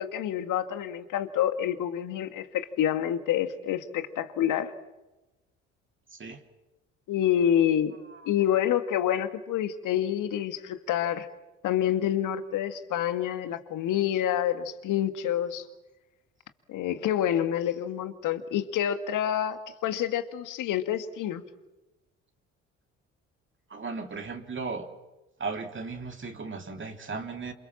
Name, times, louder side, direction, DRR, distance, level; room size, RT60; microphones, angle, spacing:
voice 1, 0.0-4.7 7.1-8.0 8.3-11.3 11.6-15.7 16.7-21.4, left 10 dB, 65° left, 10 dB, 2.1 m, -27 dB
voice 2, 6.1-6.4 8.1-8.3 23.7-24.9 25.4-27.5, right 4 dB, 35° right, 4 dB, 3.3 m, -36 dB
28.5 x 26.5 x 7.4 m, 1.0 s
hypercardioid pair, 50°, 34 cm